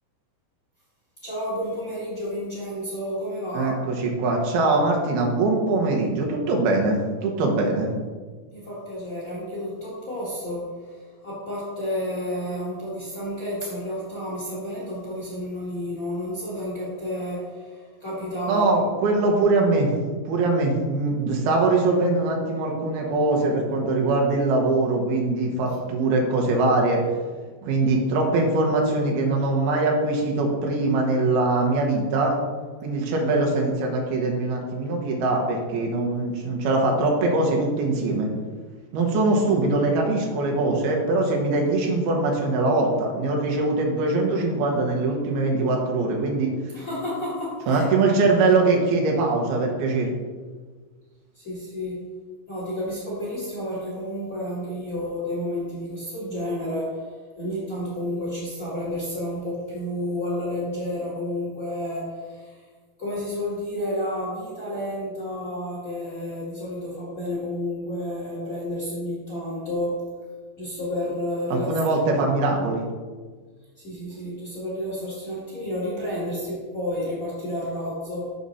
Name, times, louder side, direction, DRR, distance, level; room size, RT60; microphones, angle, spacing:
voice 1, 1.2-3.7 8.5-18.9 46.7-47.9 48.5-48.6 51.3-52.0 52.5-62.6 63.0-69.9 70.6-71.7 72.1-72.6 73.8-78.3, left 1 dB, 30° left, -7 dB, 1.7 m, -31 dB
voice 2, 3.5-7.9 18.5-19.9 20.3-27.0 27.6-32.3 32.8-38.3 38.9-46.5 47.7-50.1 71.5-72.8, right 2 dB, 85° right, 0 dB, 3.1 m, -22 dB
6.8 x 6.4 x 4.1 m, 1.5 s
omnidirectional pair, 4.3 m